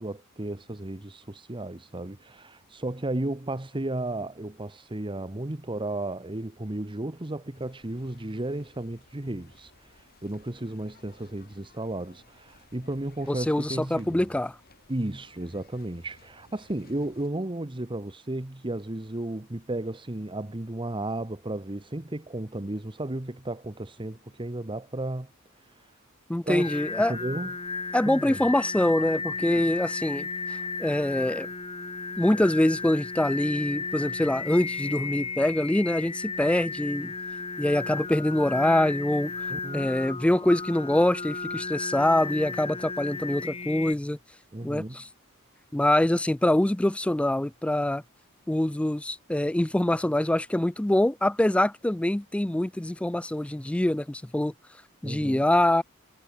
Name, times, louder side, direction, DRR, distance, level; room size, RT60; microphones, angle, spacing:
voice 1, 0.0-14.3 14.9-25.3 25.6-25.8 26.5-26.8 27.1-27.5 28.0-28.4 29.4-29.7 39.5-39.9 44.5-45.0 55.0-55.4, right 1 dB, 25° right, 1.1 m, -34 dB
sound 1, 7.5-17.3, left 3 dB, 45° left, 5.5 m, -59 dB
voice 2, 13.3-14.5 26.3-27.1 27.9-31.5 32.2-37.1 37.6-39.3 39.7-44.2 44.6-45.1 45.7-48.0 48.5-54.5 55.0-55.8, left 1 dB, 5° left, 0.3 m, -24 dB
Singing, 26.6-43.9, left 4 dB, 25° left, 2.9 m, -34 dB
head